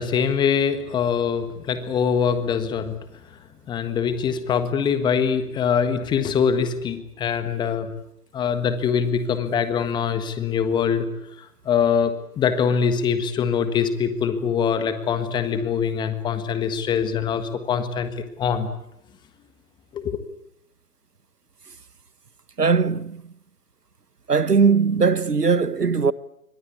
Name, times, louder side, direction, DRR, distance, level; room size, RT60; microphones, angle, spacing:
voice 1, 0.0-2.9 3.7-7.9 8.3-11.0 11.4-18.1 18.4-18.7 19.9-20.2, left 7 dB, 10° left, 1.5 m, -23 dB
voice 2, 22.6-23.2 24.3-26.1, right 5 dB, 90° right, 1.3 m, -19 dB
28.0 x 24.0 x 8.6 m
figure-of-eight pair, 135°, 46 cm